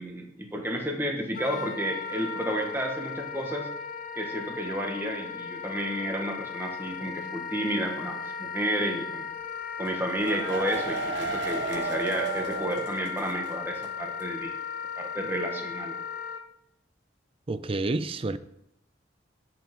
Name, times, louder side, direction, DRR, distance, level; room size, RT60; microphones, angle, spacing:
voice 1, 0.0-3.7 4.1-9.3 9.8-14.5 15.0-15.9, equal, 10° right, 1 dB, 1.5 m, -31 dB
Wind instrument woodwind instrument, 1.3-16.4, left 6 dB, 50° left, 0.8 m, -36 dB
sound 1, 9.8-13.5 13.8-13.9 14.2-14.3, right 4 dB, 85° right, 1.1 m, -33 dB
voice 2, 17.5-18.4, right 2 dB, 30° right, 14 dB, 0.4 m, -29 dB
17.0 x 5.8 x 3.7 m, 0.77 s
head